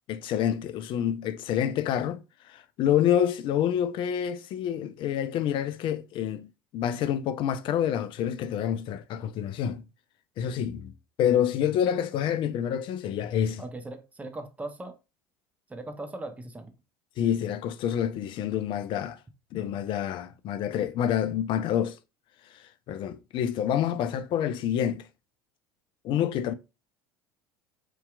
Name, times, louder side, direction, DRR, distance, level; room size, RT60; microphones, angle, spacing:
voice 1, 0.1-2.2 2.5-9.8 10.4-10.9 11.2-13.6 17.2-19.2 19.5-22.0 22.9-25.1 26.0-26.5, left 9 dB, 45° left, 0.3 m, -27 dB
voice 2, 13.6-15.0 15.7-16.7, right 2 dB, 10° right, 0.5 m, -39 dB
2.7 x 2.2 x 2.2 m
hypercardioid pair, 70°, 11 cm